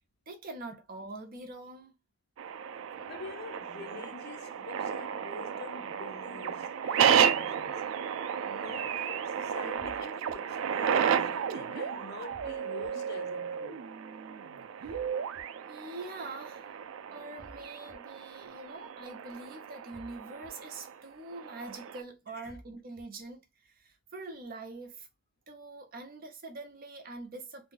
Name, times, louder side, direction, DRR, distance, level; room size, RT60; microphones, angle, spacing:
voice 1, 0.3-1.9 15.7-16.7 17.1-25.1 25.5-27.7, right 2 dB, 50° right, 0.6 m, -44 dB
sound 1, 2.4-22.0, right 8 dB, 85° right, 0.3 m, -33 dB
voice 2, 2.9-7.8 8.4-13.9 22.3-22.5, left 4 dB, 55° left, 0.5 m, -46 dB
sound 2, 9.8-10.3 12.3-12.9 14.8-15.4 17.4-18.0 19.9-20.5 22.4-23.0, equal, 5° right, 0.6 m, -53 dB
2.6 x 2.2 x 3.1 m
head